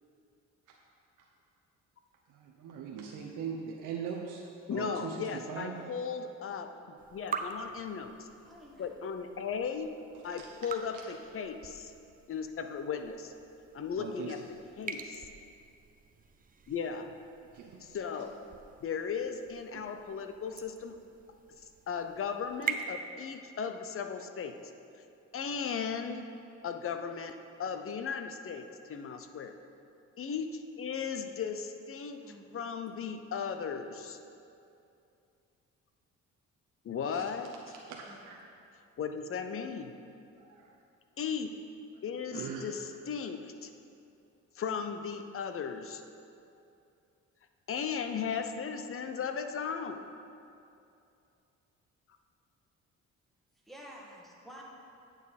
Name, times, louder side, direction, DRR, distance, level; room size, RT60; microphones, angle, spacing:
voice 1, 2.3-4.4 4.7-5.8 10.4-10.5 14.0-14.3 17.5-17.8 19.7-19.8 37.1-37.2 37.9-38.4 40.5-40.7 42.3-42.6, right 7 dB, 80° right, -1 dB, 0.9 m, -40 dB
voice 2, 4.7-8.3 8.8-9.9 10.2-11.9 12.3-13.3 13.7-14.4 14.8-15.2 16.7-17.1 17.8-18.4 18.8-21.0 21.6-24.5 25.3-26.3 26.6-29.5 30.2-32.2 32.5-34.2 36.8-37.7 39.0-39.9 41.2-41.5 42.0-43.7 44.6-46.0 47.7-50.0, left 6 dB, 45° left, 7 dB, 0.7 m, -36 dB
sound 1, 7.0-22.8, right 5 dB, 30° right, 0.6 m, -45 dB
voice 3, 8.3-8.9 18.1-18.4 32.2-32.5 38.1-38.2 53.7-54.6, equal, ahead, -4 dB, 1.7 m, -51 dB
8.9 x 7.2 x 4.2 m, 2.6 s
cardioid pair, 90°, 30 cm